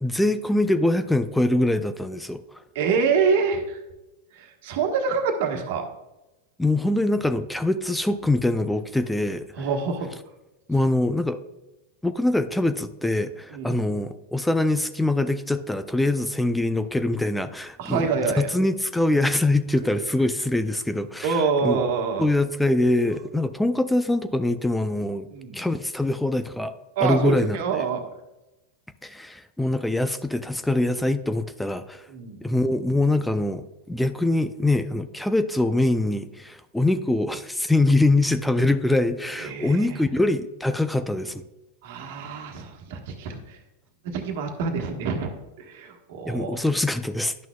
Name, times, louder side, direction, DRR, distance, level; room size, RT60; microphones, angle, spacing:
voice 1, 0.0-2.4 6.6-9.5 10.7-11.4 12.0-18.1 18.4-21.8 22.2-25.3 25.5-26.7 27.0-27.6 29.0-32.0 32.4-41.4 46.3-47.3, left 2 dB, 5° left, 11 dB, 0.4 m, -23 dB
voice 2, 2.7-3.8 4.3-5.8 9.6-10.1 13.5-13.8 17.8-18.5 21.2-22.3 25.3-25.6 26.9-28.1 32.1-32.4 39.4-40.0 41.8-43.6 44.0-45.3 45.6-46.7, right 5 dB, 65° right, 4 dB, 1.3 m, -26 dB
11.0 x 6.1 x 2.3 m, 0.99 s
hypercardioid pair, 105°, 0 cm